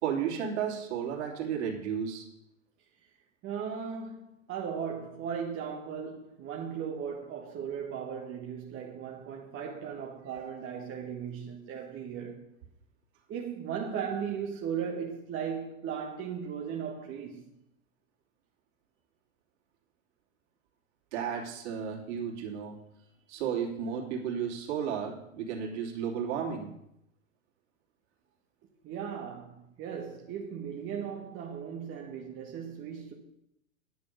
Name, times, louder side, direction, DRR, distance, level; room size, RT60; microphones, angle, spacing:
voice 1, 0.0-2.3 21.1-22.8 23.3-26.7, right 7 dB, 55° right, 3.0 m, -33 dB
voice 2, 3.4-12.5 13.3-17.5 28.8-33.1, right 7 dB, 30° right, 1.3 m, -37 dB
10.5 x 6.8 x 6.6 m
hypercardioid pair, 105°, 41 cm